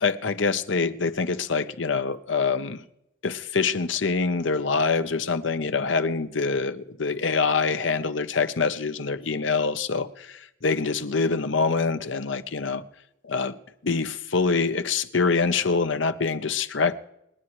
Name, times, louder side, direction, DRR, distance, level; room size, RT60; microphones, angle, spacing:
voice 1, 0.0-2.8 3.2-12.8 13.2-13.6 13.8-16.9, left 4 dB, 85° left, 0.9 m, -25 dB
28.0 x 9.8 x 3.1 m
head